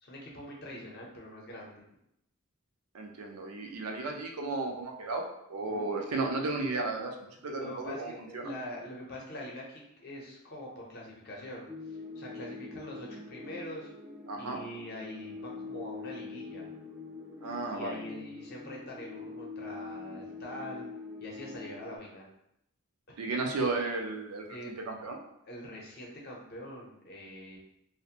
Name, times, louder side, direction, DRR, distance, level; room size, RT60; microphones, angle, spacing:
voice 1, 0.0-1.8 5.6-5.9 7.4-13.9 14.4-16.6 17.7-20.8 21.2-22.3 23.1-23.2 24.5-24.7 25.4-27.6, left 1 dB, 45° left, -2 dB, 0.6 m, -44 dB
voice 2, 2.9-8.5 14.3-14.6 17.4-18.0 23.2-24.4 24.9-25.2, right 3 dB, 85° right, 2 dB, 0.4 m, -34 dB
sound 1, 11.7-22.0, left 3 dB, 5° right, 0.3 m, -44 dB
2.4 x 2.1 x 2.8 m, 0.79 s
head